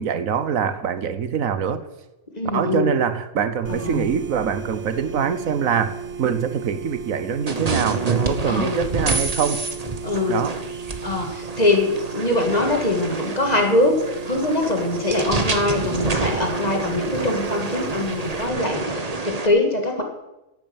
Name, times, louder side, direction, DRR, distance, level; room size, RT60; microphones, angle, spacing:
voice 1, 0.0-1.8 2.5-9.7 10.3-10.5, right 7 dB, 75° right, 13 dB, 1.3 m, -24 dB
voice 2, 2.3-2.9 3.7-4.1 8.4-8.8 10.0-10.4 11.0-20.0, left 2 dB, 30° left, 3 dB, 2.3 m, -23 dB
sound 1, 3.6-18.5, right 6 dB, 60° right, 1.2 m, -35 dB
sound 2, 7.5-19.5, right 3 dB, 30° right, 1.2 m, -28 dB
12.0 x 8.8 x 8.8 m, 0.98 s
omnidirectional pair, 1.4 m